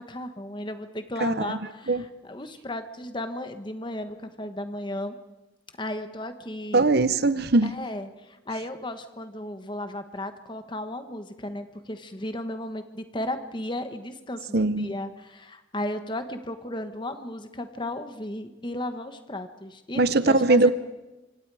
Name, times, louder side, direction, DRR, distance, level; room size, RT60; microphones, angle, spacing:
voice 1, 0.0-5.2 5.8-6.9 7.6-20.7, left 1 dB, 25° left, 9 dB, 1.2 m, -35 dB
voice 2, 1.2-1.6 1.9-2.0 6.7-7.7 14.5-14.9 20.0-20.7, right 3 dB, 55° right, 14 dB, 0.8 m, -21 dB
25.5 x 25.5 x 4.8 m, 1.1 s
head